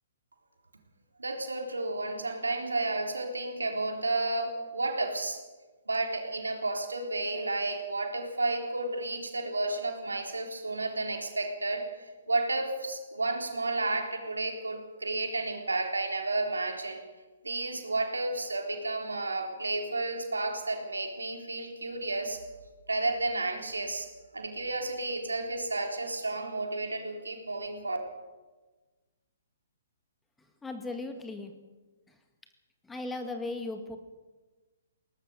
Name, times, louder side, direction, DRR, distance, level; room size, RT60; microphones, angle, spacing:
voice 1, 1.2-5.4 5.9-17.0 17.4-22.4 22.9-24.1 24.3-28.0, right 2 dB, 80° right, 3 dB, 3.8 m, -32 dB
voice 2, 30.6-31.5 32.1-32.2 32.8-34.0, left 2 dB, 10° left, 6 dB, 1.8 m, -37 dB
21.5 x 18.5 x 6.6 m, 1.3 s
figure-of-eight pair, 125°, 0 cm